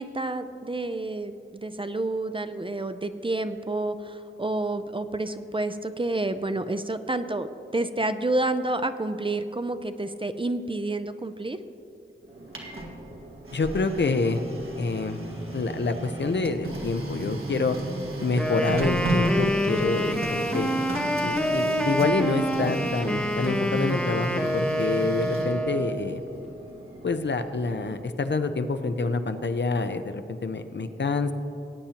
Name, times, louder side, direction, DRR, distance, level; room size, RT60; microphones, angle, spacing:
voice 1, 0.0-11.6, right 2 dB, 25° right, 10 dB, 0.5 m, -29 dB
Printer, 12.2-28.0, right 1 dB, 80° right, 1.6 m, -34 dB
voice 2, 13.5-14.4 14.8-15.2 15.5-17.8 18.2-20.7 21.2-26.2 27.0-31.3, left 3 dB, 55° left, 9 dB, 0.6 m, -27 dB
Wind instrument woodwind instrument, 18.4-26.0, equal, 5° left, 0.8 m, -27 dB
18.5 x 8.6 x 2.9 m, 2.7 s
wide cardioid pair, 50°, 21 cm